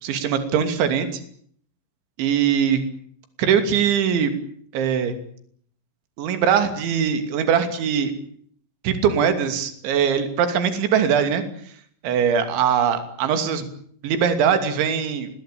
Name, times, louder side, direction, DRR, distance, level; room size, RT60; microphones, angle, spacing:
voice 1, 0.0-1.2 2.2-2.8 3.4-4.3 4.7-5.1 6.2-8.1 8.8-11.4 12.0-13.7 14.0-15.3, right 7 dB, 70° right, 9 dB, 5.1 m, -21 dB
27.5 x 20.5 x 8.8 m, 0.62 s
omnidirectional pair, 5.7 m